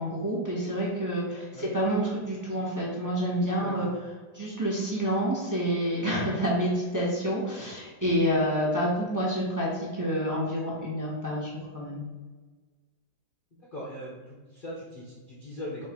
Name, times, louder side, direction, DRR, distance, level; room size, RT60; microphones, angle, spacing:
voice 1, 0.0-3.9 4.3-12.0, equal, 15° right, -6 dB, 0.7 m, -28 dB
voice 2, 13.7-15.9, equal, 85° left, -5 dB, 0.4 m, -40 dB
4.7 x 2.5 x 4.3 m, 1.4 s
omnidirectional pair, 2.1 m